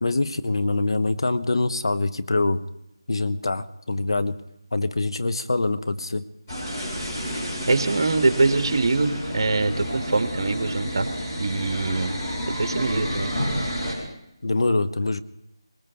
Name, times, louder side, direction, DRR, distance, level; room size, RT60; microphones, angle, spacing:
voice 1, 0.0-2.6 3.1-4.4 4.7-6.3 14.4-15.2, left 2 dB, 70° left, 11 dB, 0.9 m, -24 dB
sound 1, 6.5-14.0, equal, 25° left, 6.0 m, -30 dB
voice 2, 7.7-11.1 11.4-12.1 12.6-13.3, right 3 dB, 55° right, 8 dB, 1.3 m, -23 dB
21.0 x 19.5 x 3.5 m, 0.83 s
figure-of-eight pair, 170°, 3 cm